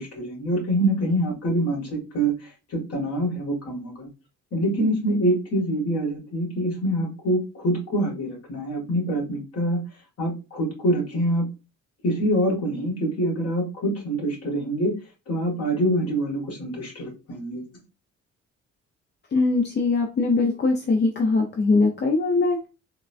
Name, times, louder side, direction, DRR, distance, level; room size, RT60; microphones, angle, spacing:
voice 1, 0.0-2.3 2.7-4.1 4.5-9.8 10.2-11.4 12.0-15.0 15.3-17.6, right 1 dB, 55° left, -2 dB, 1.8 m, -25 dB
voice 2, 19.3-22.7, left 3 dB, 35° left, 2 dB, 0.6 m, -21 dB
3.7 x 2.3 x 2.4 m, 0.29 s
cardioid pair, 90°, 30 cm